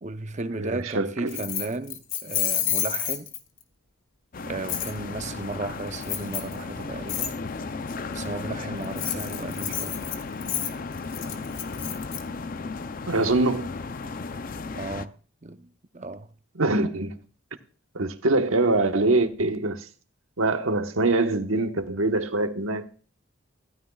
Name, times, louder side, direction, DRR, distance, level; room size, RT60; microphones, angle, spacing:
voice 1, 0.0-3.3 4.4-7.4 8.1-10.0 14.7-15.2 15.4-16.3, right 2 dB, 35° right, 0.7 m, -35 dB
voice 2, 0.6-1.4 13.1-13.7 16.5-17.2 17.9-19.9 20.4-22.9, right 2 dB, 85° right, 1.2 m, -24 dB
Keys jangling, 1.3-3.6 4.7-4.9 6.0-6.5 7.1-7.3 8.8-12.2, left 11 dB, 75° left, 1.4 m, -29 dB
sound 1, 4.3-15.1, left 4 dB, 40° left, 0.5 m, -35 dB
15.5 x 13.5 x 2.3 m
head